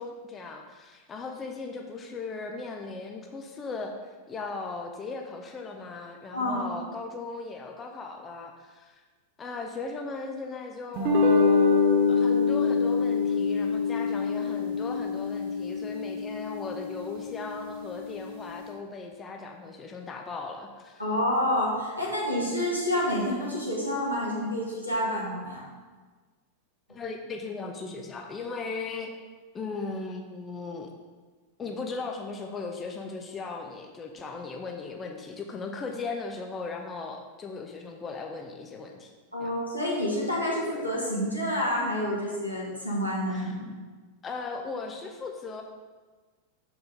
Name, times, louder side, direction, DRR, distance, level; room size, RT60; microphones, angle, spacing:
voice 1, 0.0-9.0 9.4-21.0 26.9-29.1 29.5-30.9 31.6-39.1 39.4-39.5 43.3-43.6 44.2-45.6, left 4 dB, 20° left, 3 dB, 0.7 m, -37 dB
voice 2, 6.3-6.6 21.0-25.7 39.3-43.7, left 1 dB, 90° left, -6 dB, 2.0 m, -28 dB
sound 1, 11.0-17.5, left 4 dB, 50° right, 0.8 m, -25 dB
6.5 x 4.8 x 5.1 m, 1.4 s
figure-of-eight pair, 90°, 0 cm